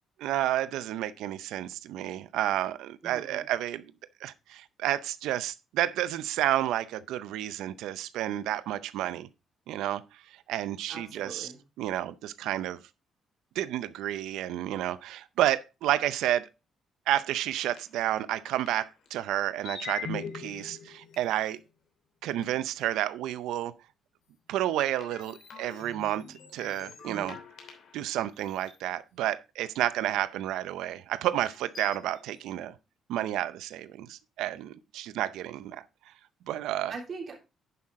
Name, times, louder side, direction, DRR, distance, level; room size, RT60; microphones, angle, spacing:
voice 1, 0.2-3.8 4.2-9.3 9.7-10.0 10.5-11.5 11.8-12.8 13.6-16.5 17.1-21.6 22.2-23.7 24.5-27.4 27.9-32.7 33.1-35.9 36.5-37.0, right 13 dB, 90° right, 0.5 m, -30 dB
voice 2, 3.0-3.5 10.9-11.6 27.0-27.4 36.9-37.4, right 4 dB, 45° right, 3.6 m, -41 dB
sound 1, 17.8-17.9 18.5-19.1 19.7-21.6 22.4-22.5 25.0-28.1 28.5-28.8 30.0-30.1 31.4-32.3, left 6 dB, 65° left, 3.0 m, -43 dB
11.0 x 5.7 x 3.6 m
cardioid pair, 90°, 0 cm